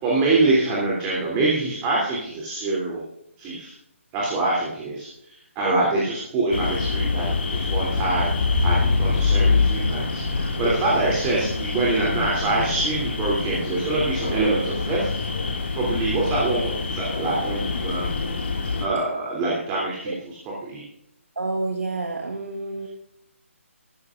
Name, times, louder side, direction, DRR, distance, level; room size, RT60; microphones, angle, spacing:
voice 1, 0.0-3.0 3.4-3.7 4.1-18.1 18.8-20.3 20.6-20.8, right 2 dB, 20° right, -5 dB, 3.1 m, -25 dB
sound 1, 6.5-18.9, left 4 dB, 50° left, 2.2 m, -25 dB
voice 2, 15.8-16.2 20.1-20.2 21.3-22.9, right 2 dB, 80° right, 1 dB, 1.5 m, -29 dB
14.5 x 13.5 x 2.5 m, 0.77 s
figure-of-eight pair, 145°, 7 cm